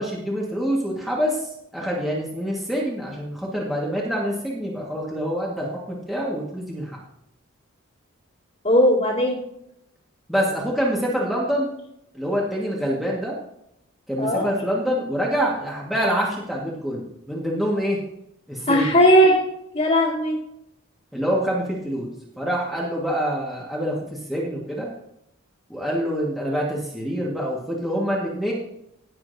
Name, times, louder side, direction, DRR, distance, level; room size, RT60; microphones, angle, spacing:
voice 1, 0.0-1.4 1.7-7.0 10.3-11.7 12.1-13.3 14.1-18.0 18.5-18.9 21.1-22.1 22.4-24.9 25.7-28.5, equal, ahead, -5 dB, 1.7 m, -26 dB
voice 2, 8.6-9.4 14.2-14.5 18.7-19.4 19.7-20.4, equal, 35° left, -9 dB, 2.3 m, -17 dB
18.0 x 7.3 x 2.8 m, 0.79 s
head